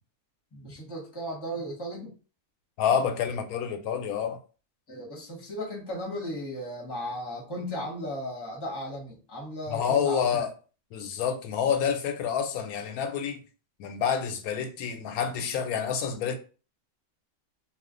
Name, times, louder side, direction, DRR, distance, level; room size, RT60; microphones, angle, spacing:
voice 1, 0.5-2.1 4.9-10.4, equal, 20° left, 0.9 m, -36 dB
voice 2, 2.8-4.4 9.7-10.5 10.9-13.4 13.8-16.4, left 7 dB, 90° left, 1.0 m, -28 dB
2.4 x 2.4 x 3.7 m
omnidirectional pair, 1.5 m